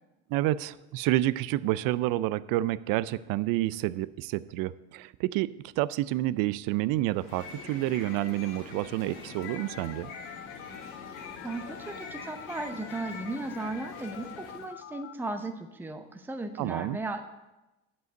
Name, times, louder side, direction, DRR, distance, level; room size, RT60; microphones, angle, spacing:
voice 1, 0.3-10.1 16.6-17.0, right 16 dB, 65° right, 18 dB, 0.5 m, -29 dB
sound 1, 7.1-14.7, left 4 dB, 75° left, 1.9 m, -44 dB
Telephone, 9.4-15.1, left 10 dB, 40° left, 0.5 m, -46 dB
voice 2, 11.4-17.3, right 2 dB, 5° right, 6 dB, 0.8 m, -36 dB
8.0 x 5.5 x 7.6 m, 1.0 s
hypercardioid pair, 75°, 36 cm